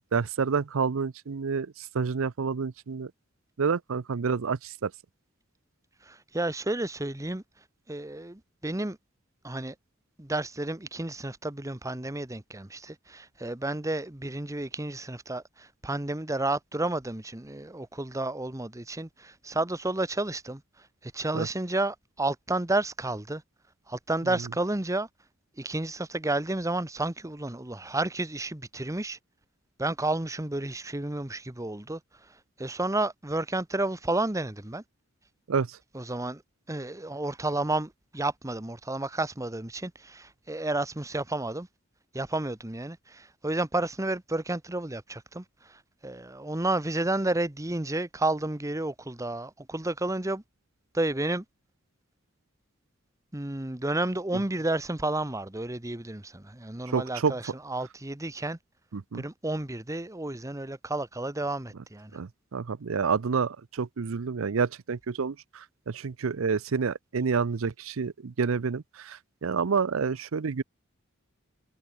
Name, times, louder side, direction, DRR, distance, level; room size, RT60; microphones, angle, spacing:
voice 1, 0.0-3.1 3.6-4.9 21.3-21.5 35.5-35.8 56.9-57.5 58.9-59.3 62.1-70.6, right 5 dB, 90° right, 0.6 m, -29 dB
voice 2, 6.0-7.4 7.9-9.0 9.4-9.7 10.2-20.6 21.0-23.4 23.9-25.1 25.6-29.2 29.8-32.0 32.6-34.8 35.9-36.4 36.7-41.7 42.1-50.4 50.9-51.4 53.3-58.6 59.1-62.1, right 2 dB, 15° right, 1.1 m, -31 dB
head